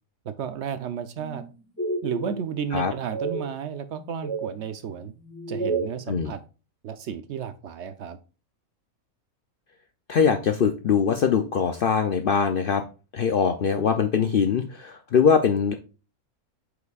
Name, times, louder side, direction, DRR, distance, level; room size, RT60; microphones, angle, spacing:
voice 1, 0.2-1.4 2.0-5.1 5.5-6.4 6.8-8.2, right 8 dB, 65° right, 11 dB, 0.7 m, -33 dB
sound 1, 1.2-1.4 1.8-2.6 3.1-3.4 3.9-4.5 5.3-6.0, right 3 dB, 10° left, 1.5 m, -30 dB
voice 2, 10.1-12.8 13.1-15.7, left 6 dB, 70° left, 7 dB, 0.5 m, -22 dB
8.0 x 5.1 x 2.4 m, 0.33 s
omnidirectional pair, 1.5 m